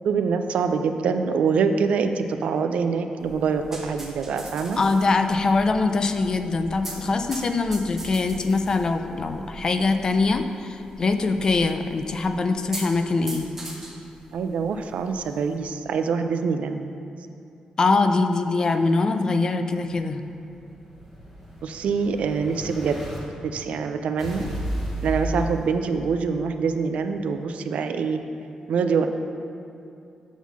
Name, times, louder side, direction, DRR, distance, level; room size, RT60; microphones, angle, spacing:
voice 1, 0.0-4.8 14.3-16.8 21.6-23.0 23.5-24.4 25.0-28.2 28.7-29.1, right 5 dB, 75° right, 7 dB, 0.4 m, -25 dB
sound 1, 3.2-15.6, right 1 dB, 15° right, 0.8 m, -42 dB
voice 2, 4.8-13.5 17.8-20.2, left 3 dB, 30° left, 7 dB, 0.3 m, -23 dB
Explosion, 19.8-23.2 24.2-26.2, right 1 dB, ahead, 1.6 m, -33 dB
7.2 x 3.7 x 6.1 m, 2.6 s
wide cardioid pair, 180°, 2 cm